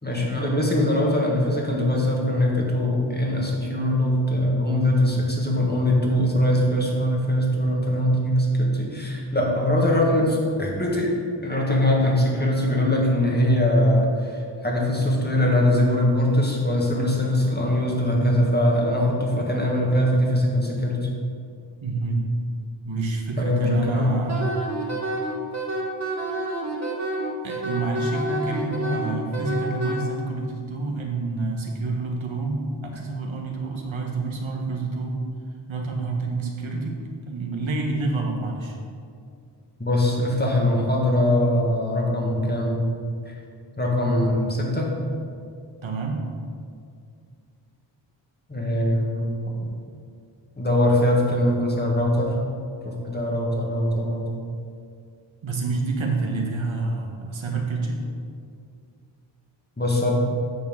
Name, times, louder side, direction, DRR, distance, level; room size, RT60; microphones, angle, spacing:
voice 1, 0.0-11.1 11.4-21.1 23.4-24.1 39.8-42.8 43.2-43.3 43.8-44.9 48.5-49.3 50.6-52.3 52.8-54.3 59.8-60.1, left 1 dB, 20° left, -2 dB, 1.8 m, -22 dB
voice 2, 21.8-22.2 22.8-24.5 27.4-35.1 35.7-38.8 45.8-46.2 55.4-58.0, right 3 dB, 80° right, 0 dB, 1.5 m, -28 dB
Wind instrument woodwind instrument, 24.3-30.0, right 1 dB, 35° right, 1.6 m, -28 dB
9.3 x 4.4 x 7.2 m, 2.3 s
wide cardioid pair, 110°, 46 cm